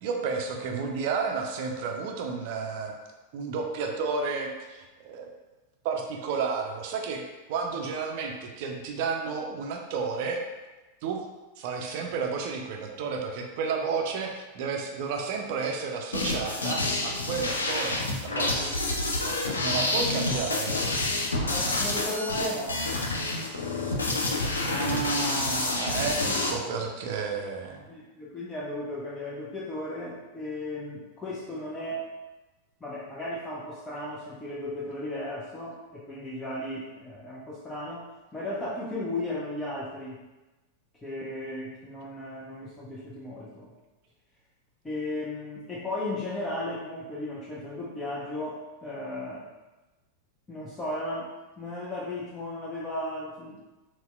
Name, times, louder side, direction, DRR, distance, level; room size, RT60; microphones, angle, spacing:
voice 1, 0.0-2.9 3.3-5.3 5.8-7.2 7.5-10.4 11.0-11.2 11.6-20.7 24.2-24.3 24.6-27.8, right 5 dB, 50° right, 3 dB, 0.4 m, -32 dB
sound 1, 16.1-26.5, left 2 dB, 75° left, 0.4 m, -28 dB
voice 2, 21.5-23.0 26.2-26.5 27.9-32.1 32.8-40.2 41.0-43.7 44.8-49.5 50.5-51.3 51.6-53.6, left 1 dB, 15° left, -7 dB, 0.5 m, -35 dB
4.0 x 2.1 x 2.3 m, 1.1 s
figure-of-eight pair, 90°, 0 cm